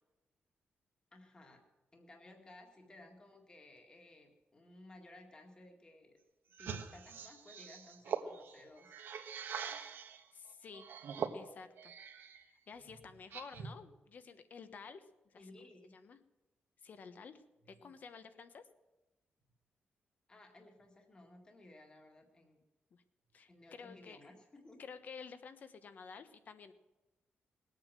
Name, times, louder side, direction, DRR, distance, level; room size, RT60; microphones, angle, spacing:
voice 1, 1.1-1.7 1.9-6.2 6.6-8.9 15.3-15.9 17.6-17.9 20.3-22.6 23.5-24.8, left 1 dB, 20° left, 2 dB, 2.0 m, -58 dB
sound 1, 6.5-10.2 10.7-12.4 12.8-13.8, right 6 dB, 70° right, 1.4 m, -43 dB
voice 2, 10.3-10.9 11.3-11.9 12.4-15.5 15.9-16.2 16.8-18.6 22.9-23.0 23.3-24.2 24.8-26.7, left 5 dB, 45° left, 11 dB, 1.2 m, -52 dB
20.0 x 8.8 x 7.5 m, 1.1 s
wide cardioid pair, 175°, 4 cm